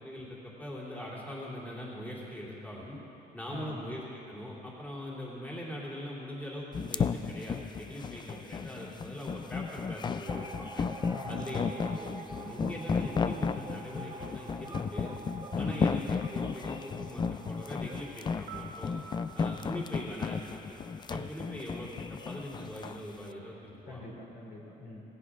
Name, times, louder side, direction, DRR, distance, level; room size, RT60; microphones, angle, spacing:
voice 1, 0.0-3.0 3.3-10.9 11.2-15.1 15.6-18.9 19.3-24.0, left 1 dB, 10° left, -5 dB, 3.1 m, -42 dB
sound 1, 6.7-23.0, left 5 dB, 25° left, 0.4 m, -33 dB
sound 2, 10.3-18.4, right 3 dB, 20° right, 0.9 m, -46 dB
voice 2, 11.1-11.7 15.5-15.9 23.8-25.0, left 2 dB, 60° left, -2 dB, 3.0 m, -42 dB
sound 3, 18.5-22.5 22.8-22.9, right 4 dB, 70° right, 0.9 m, -52 dB
17.0 x 15.5 x 3.8 m, 3.0 s
cardioid pair, 110°, 17 cm